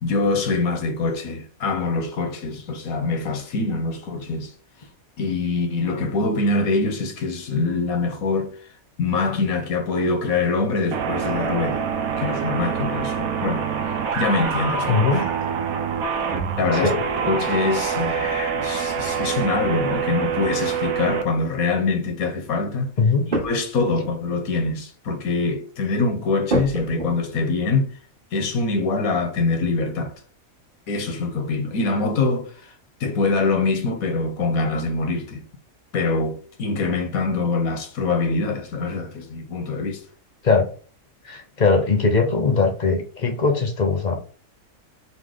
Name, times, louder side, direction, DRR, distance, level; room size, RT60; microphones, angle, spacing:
voice 1, 0.0-4.5 5.2-8.5 9.0-11.8 12.2-15.4 16.6-16.9 17.3-22.9 23.4-27.9 28.3-30.1 30.9-32.7 33.0-35.4 35.9-40.0, left 3 dB, 80° left, 1.3 m, -24 dB
sound 1, 10.9-21.2, right 6 dB, 90° right, 1.1 m, -25 dB
voice 2, 14.9-15.2 16.7-17.0 23.0-23.2 40.4-40.7 41.2-44.2, left 4 dB, 40° left, 0.8 m, -20 dB
sound 2, 23.3-23.8 24.2-24.3 24.6-24.7 25.3-25.4 26.5-27.4 29.6-29.7 30.0-30.6 31.0-31.1, right 2 dB, 40° right, 1.1 m, -29 dB
4.1 x 2.9 x 3.6 m
omnidirectional pair, 1.5 m